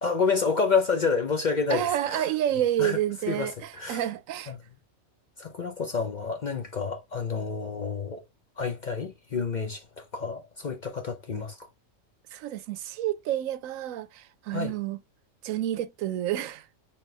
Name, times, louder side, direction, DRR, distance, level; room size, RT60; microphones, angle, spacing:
voice 1, 0.0-2.3 2.8-3.0 3.3-4.0 4.5-4.6 5.4-8.2 8.6-11.7 14.5-14.7, left 5 dB, 45° left, 0.6 m, -29 dB
voice 2, 1.7-4.5 12.3-15.0 15.4-16.7, right 12 dB, 85° right, 1.0 m, -29 dB
4.3 x 3.7 x 3.2 m
omnidirectional pair, 1.4 m